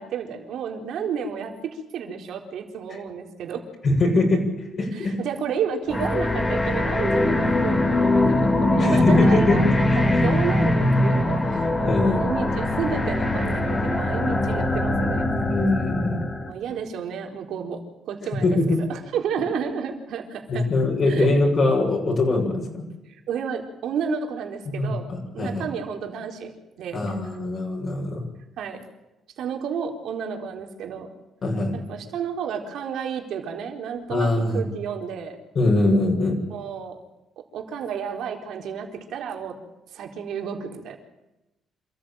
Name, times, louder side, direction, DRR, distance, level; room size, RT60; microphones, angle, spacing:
voice 1, 0.0-3.6 4.9-9.7 10.0-15.3 16.5-20.7 21.1-21.3 23.3-26.5 26.8-27.1 28.6-28.8 29.4-31.1 31.7-35.4 36.5-37.0 37.4-39.6 39.9-41.0, right 7 dB, 75° right, 3 dB, 4.2 m, -31 dB
voice 2, 3.8-5.2 8.8-10.2 11.8-12.2 15.3-16.2 18.4-18.8 20.5-22.8 24.7-25.7 26.9-28.2 31.4-31.7 34.1-34.6 35.6-36.4, left 2 dB, 45° left, -1 dB, 7.0 m, -22 dB
sound 1, 5.9-16.5, left 2 dB, 25° left, 2.6 m, -22 dB
27.0 x 14.5 x 9.0 m, 0.96 s
cardioid pair, 110°, 0 cm